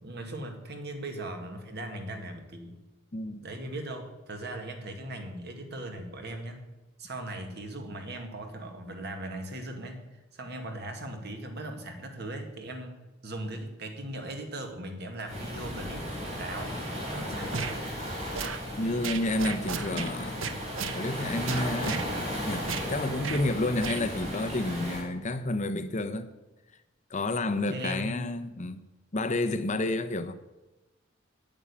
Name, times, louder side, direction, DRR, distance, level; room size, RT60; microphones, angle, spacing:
voice 1, 0.0-2.8 3.4-6.7 7.0-10.0 10.3-16.8 17.1-17.7 27.7-28.3, right 1 dB, 60° right, 1.9 m, -39 dB
voice 2, 3.1-3.4 17.4-17.5 18.8-20.4 20.9-22.1 22.4-26.3 27.1-28.8 29.1-30.3, left 2 dB, 40° left, 0.8 m, -30 dB
Waves surf, 15.3-25.0, equal, 35° right, 4.3 m, -35 dB
sound 1, 17.5-17.8 18.3-18.6 19.0-20.1 20.4-21.0 21.5-22.1 22.7-22.9 23.2-23.4 23.8-24.0, right 5 dB, 85° right, 0.8 m, -34 dB
9.0 x 8.8 x 8.5 m
head